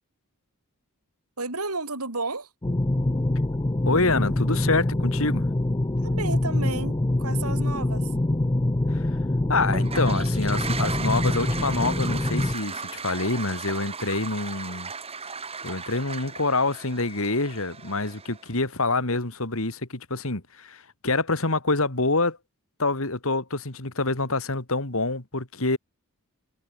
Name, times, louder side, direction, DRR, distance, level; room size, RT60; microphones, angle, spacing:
voice 1, 1.4-2.5 6.0-8.1, right 3 dB, 85° right, 6.7 m, -32 dB
sound 1, 2.6-12.5, left 1 dB, 20° left, 0.6 m, -25 dB
voice 2, 3.8-5.5 8.9-9.1 9.5-14.9 15.6-22.4 22.8-25.8, left 3 dB, 65° left, 2.7 m, -26 dB
Toilet flush, 9.7-18.5, right 5 dB, 25° right, 4.7 m, -36 dB
head